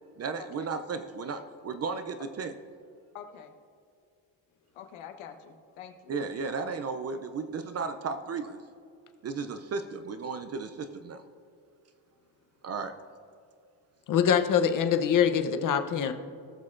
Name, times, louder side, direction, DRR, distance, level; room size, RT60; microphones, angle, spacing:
voice 1, 0.2-2.6 6.1-8.6 9.2-11.2 12.6-13.0, right 4 dB, 35° right, 9 dB, 0.4 m, -34 dB
voice 2, 3.1-3.5 4.7-6.2, left 8 dB, 75° left, 5 dB, 1.1 m, -46 dB
voice 3, 14.1-16.1, left 8 dB, 40° left, 8 dB, 0.7 m, -24 dB
18.5 x 6.4 x 2.5 m, 2.4 s
cardioid pair, 115°, 49 cm